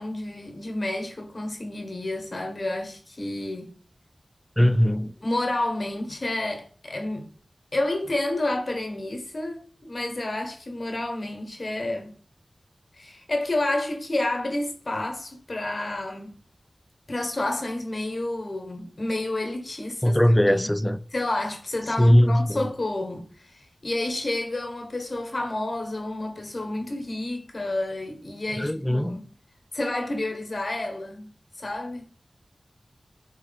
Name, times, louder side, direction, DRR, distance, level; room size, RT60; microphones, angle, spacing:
voice 1, 0.0-3.7 5.2-7.3 7.7-12.1 12.9-16.3 17.1-20.2 20.5-20.7 21.1-29.2 29.7-31.3 31.6-32.0, left 2 dB, 50° left, 1.2 m, -30 dB
voice 2, 4.6-5.1 20.0-21.0 22.0-22.6 28.6-29.2, equal, 10° left, 0.3 m, -20 dB
4.2 x 3.2 x 3.9 m
wide cardioid pair, 55°, 0 cm